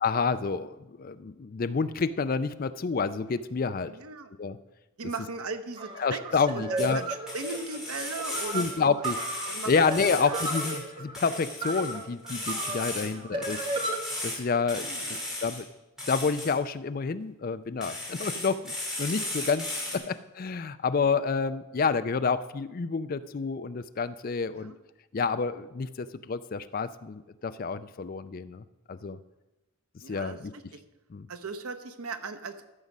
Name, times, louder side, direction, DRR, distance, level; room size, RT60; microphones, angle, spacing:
voice 1, 0.0-3.9 4.4-4.6 6.0-7.0 8.5-9.2 9.4-13.6 14.2-14.9 15.4-15.6 16.1-24.7 25.1-29.2 30.1-30.5 31.1-31.3, left 5 dB, 40° left, 12 dB, 0.4 m, -29 dB
voice 2, 3.8-4.3 5.0-8.9 9.5-9.7 10.2-10.6 13.0-13.2 14.7-15.2 19.9-20.0 24.5-24.8 30.0-30.8 31.3-32.6, right 4 dB, 85° right, 8 dB, 0.9 m, -38 dB
sound 1, 5.8-14.0, right 2 dB, 20° right, 0.7 m, -35 dB
sound 2, 6.8-7.0 7.3-8.7 9.0-10.8 11.1-13.1 13.4-14.4 14.7-15.6 16.0-16.5 17.8-20.0, left 1 dB, 5° right, 2.8 m, -36 dB
13.5 x 6.1 x 5.3 m, 1.0 s
head